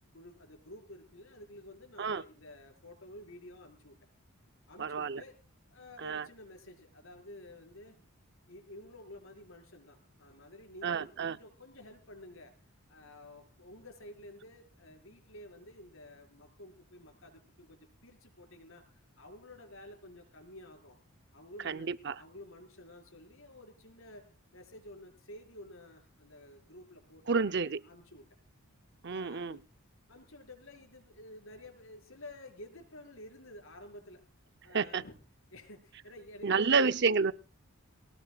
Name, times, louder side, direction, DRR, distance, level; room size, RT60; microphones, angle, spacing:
voice 1, 0.1-4.0 4.7-5.4 5.7-8.0 8.5-12.5 12.9-21.0 21.3-27.6 27.8-28.2 29.1-29.6 30.1-34.2 34.6-35.1 35.5-36.6, left 1 dB, 60° left, 4 dB, 5.3 m, -52 dB
voice 2, 4.8-5.2 6.0-6.3 10.8-11.4 21.6-22.2 27.3-27.8 29.0-29.6 34.7-35.0 36.4-37.3, right 5 dB, 50° right, 11 dB, 0.7 m, -29 dB
22.5 x 19.0 x 2.4 m, 0.37 s
head